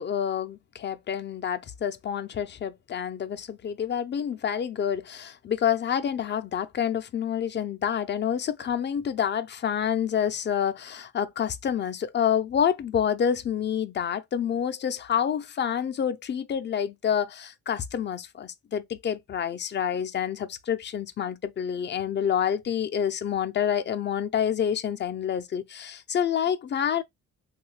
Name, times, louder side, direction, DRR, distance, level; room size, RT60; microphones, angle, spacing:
voice 1, 0.0-27.0, left 8 dB, 35° left, 0.5 m, -28 dB
3.1 x 2.3 x 3.1 m
cardioid pair, 90°, 30 cm